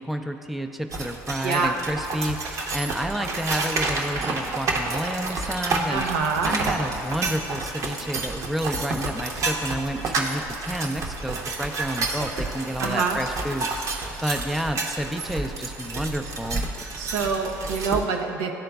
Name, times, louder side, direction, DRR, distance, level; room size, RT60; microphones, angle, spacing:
voice 1, 0.0-6.0 6.4-16.6, equal, ahead, 5 dB, 0.4 m, -30 dB
sound 1, 0.9-18.0, right 3 dB, 50° right, 0.8 m, -30 dB
voice 2, 1.4-1.7 5.9-6.6 12.8-13.2 17.0-18.6, right 5 dB, 90° right, 2 dB, 0.5 m, -26 dB
11.5 x 3.8 x 2.3 m, 2.8 s
supercardioid pair, 75°, 7 cm